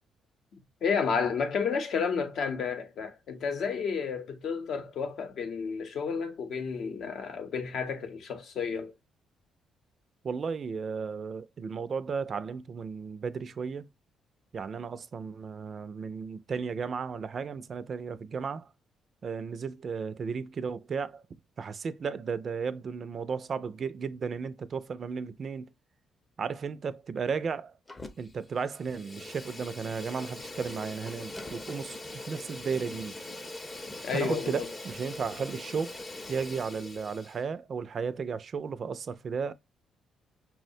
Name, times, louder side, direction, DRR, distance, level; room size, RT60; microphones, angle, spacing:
voice 1, 0.8-8.9 34.0-34.7, left 6 dB, 70° left, 0.7 m, -31 dB
voice 2, 10.2-13.9 14.5-18.7 19.2-21.2 21.6-25.7 26.4-27.7 28.2-33.2 34.1-36.0 36.3-39.5, right 5 dB, 50° right, 0.3 m, -34 dB
Fire, 27.9-28.4 28.7-37.4, left 2 dB, 20° left, 0.5 m, -42 dB
5.5 x 2.1 x 2.6 m
cardioid pair, 90°, 0 cm